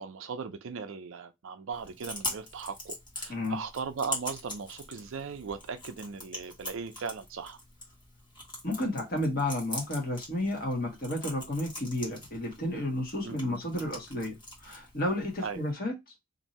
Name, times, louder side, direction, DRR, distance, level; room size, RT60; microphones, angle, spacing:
voice 1, 0.0-7.6 13.2-13.6 15.4-15.6, right 5 dB, 60° right, 0.4 m, -38 dB
Chewing mastication, 1.7-15.7, left 1 dB, 20° left, 1.3 m, -43 dB
voice 2, 8.6-16.0, left 1 dB, 40° left, 1.3 m, -32 dB
2.6 x 2.6 x 4.1 m
head